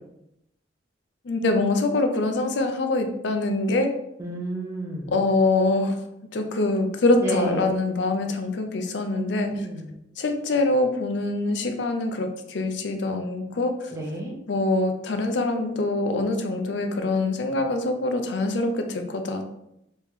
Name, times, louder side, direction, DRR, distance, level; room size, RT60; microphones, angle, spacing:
voice 1, 1.2-3.9 5.1-6.0 6.3-9.7 10.2-13.9 14.5-19.4, left 2 dB, 70° left, 6 dB, 0.5 m, -24 dB
voice 2, 4.2-5.1 7.2-7.7 9.1-9.9 13.9-14.3, right 2 dB, 15° right, -2 dB, 0.6 m, -30 dB
3.2 x 2.9 x 3.5 m, 0.83 s
head